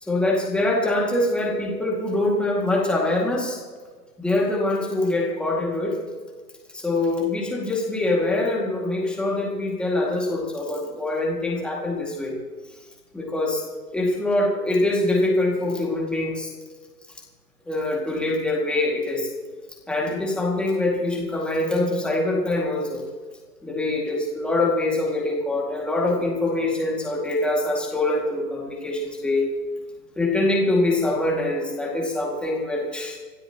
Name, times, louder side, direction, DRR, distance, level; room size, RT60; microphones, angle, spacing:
voice 1, 0.0-3.6 4.2-6.0 6.8-12.4 13.1-13.6 13.9-16.5 17.7-19.3 19.9-23.0 23.6-29.5 30.2-33.2, left 2 dB, ahead, -2 dB, 2.1 m, -24 dB
26.5 x 12.5 x 2.9 m, 1.5 s
hypercardioid pair, 145°, 50 cm